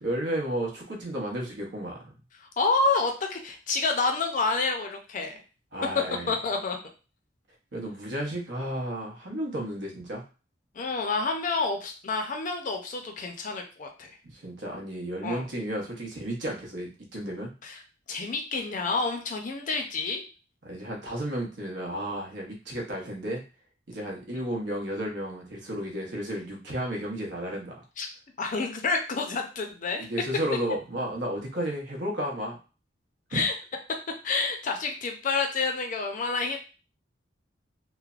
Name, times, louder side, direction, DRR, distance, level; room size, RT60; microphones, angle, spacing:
voice 1, 0.0-2.2 5.7-6.3 7.7-10.2 14.2-17.5 20.6-23.4 23.9-27.8 30.0-32.6 33.3-33.4, right 1 dB, 65° right, -1 dB, 0.8 m, -33 dB
voice 2, 2.6-5.4 6.3-6.8 10.8-14.1 15.2-15.4 17.6-17.7 18.1-20.2 28.0-28.1 28.4-30.1 33.3-33.5 34.2-36.6, left 3 dB, 45° left, 4 dB, 0.5 m, -28 dB
3.1 x 2.0 x 2.4 m, 0.34 s
head